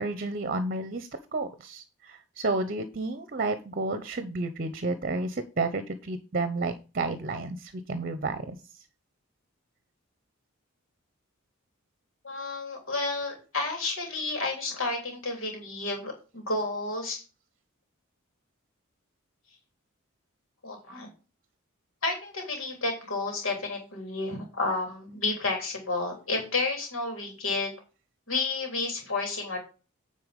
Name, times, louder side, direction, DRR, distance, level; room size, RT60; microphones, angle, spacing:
voice 1, 0.0-8.8, right 3 dB, 45° right, 11 dB, 0.8 m, -31 dB
voice 2, 12.2-17.2 20.6-21.1 22.0-27.7 28.3-29.6, left 3 dB, 70° left, 2 dB, 3.4 m, -31 dB
9.5 x 4.4 x 5.2 m, 0.32 s
head